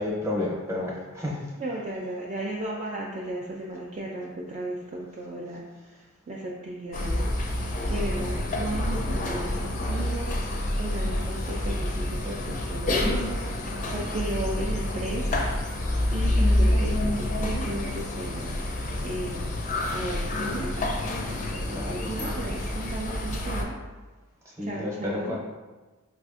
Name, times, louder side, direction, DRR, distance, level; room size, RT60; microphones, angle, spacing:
voice 1, 0.0-1.4 21.6-22.4 24.4-25.4, left 2 dB, 15° right, -4 dB, 0.7 m, -31 dB
voice 2, 1.6-6.0 6.3-13.4 13.9-15.4 16.1-19.5 19.9-21.0 21.5-23.8 24.6-25.4, right 1 dB, 30° right, -3 dB, 0.3 m, -35 dB
sound 1, 6.9-23.6, left 1 dB, 35° left, 0.4 m, -28 dB
4.7 x 2.5 x 2.4 m, 1.3 s
head